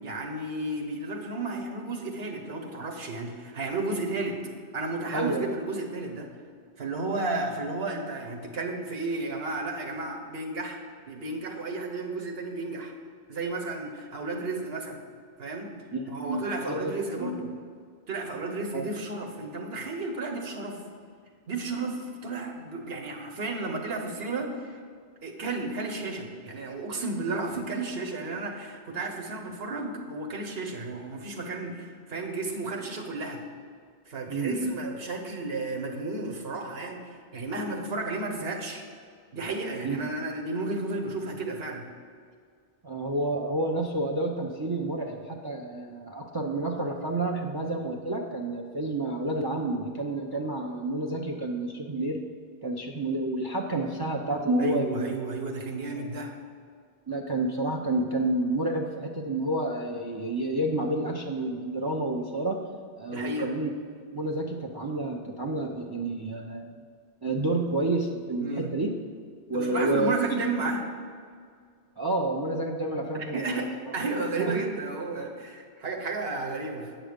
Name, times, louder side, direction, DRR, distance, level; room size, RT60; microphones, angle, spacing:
voice 1, 0.0-4.4 4.7-6.3 6.8-10.8 11.1-12.9 13.3-15.0 15.4-15.7 16.1-17.3 18.1-20.8 21.5-24.8 25.2-33.4 34.1-38.8 39.3-41.9 54.6-56.3 63.1-63.5 66.3-66.4 68.4-68.7 69.5-70.8 73.3-76.9, right 3 dB, 75° right, 2 dB, 1.3 m, -33 dB
voice 2, 5.1-5.5 15.9-16.9 17.2-17.5 18.7-18.9 34.3-34.7 39.8-40.0 42.8-52.2 52.6-55.1 56.0-56.1 57.1-62.6 63.0-63.7 64.1-66.8 67.2-68.9 69.5-70.2 72.0-73.7 74.4-74.6, right 2 dB, 30° right, 2 dB, 0.5 m, -29 dB
8.9 x 6.1 x 5.1 m, 2.1 s
omnidirectional pair, 1.0 m